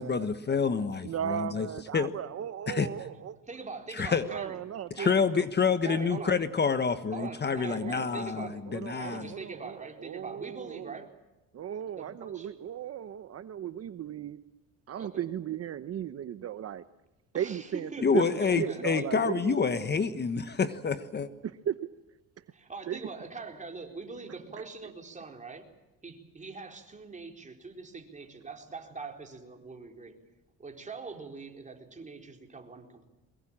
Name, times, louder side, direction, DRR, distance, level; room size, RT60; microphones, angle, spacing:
voice 1, 0.0-1.7 1.9-2.1 2.7-2.9 3.9-4.3 4.9-9.3 18.0-21.3, left 5 dB, 30° left, 11 dB, 1.3 m, -28 dB
voice 2, 1.0-3.4 4.2-5.5 5.8-6.4 7.2-11.0 11.5-14.4 14.9-16.8 17.3-19.6 21.4-21.8 22.4-22.5 22.9-23.0, right 10 dB, 50° right, 12 dB, 0.9 m, -36 dB
voice 3, 3.5-4.6 4.9-5.3 5.8-6.4 7.1-8.6 8.9-11.1 12.0-12.6 15.0-15.2 17.3-19.1 22.5-25.7 26.0-30.2 30.6-33.0, right 4 dB, 20° right, 3 dB, 4.3 m, -43 dB
23.0 x 21.5 x 8.8 m, 1.0 s
cardioid pair, 115°, 33 cm